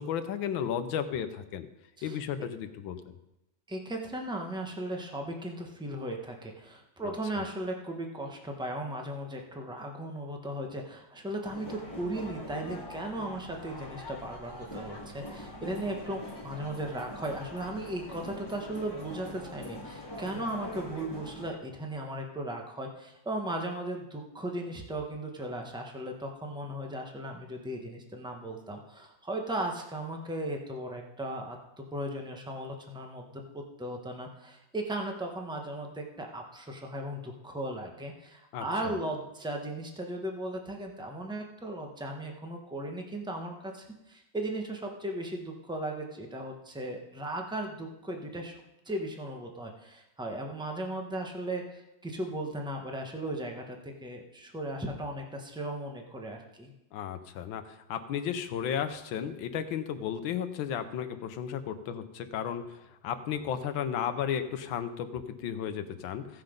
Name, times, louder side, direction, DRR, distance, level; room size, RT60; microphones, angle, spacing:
voice 1, 0.0-1.7 2.0-3.0 7.0-7.1 38.5-38.9 56.9-62.8 63.0-66.4, left 8 dB, 85° left, 10 dB, 1.5 m, -34 dB
voice 2, 3.7-48.6 48.8-56.7, right 1 dB, 5° right, 2 dB, 0.7 m, -37 dB
sound 1, 11.5-21.5, left 1 dB, 10° left, 1.7 m, -43 dB
15.5 x 5.9 x 5.1 m, 0.93 s
omnidirectional pair, 2.1 m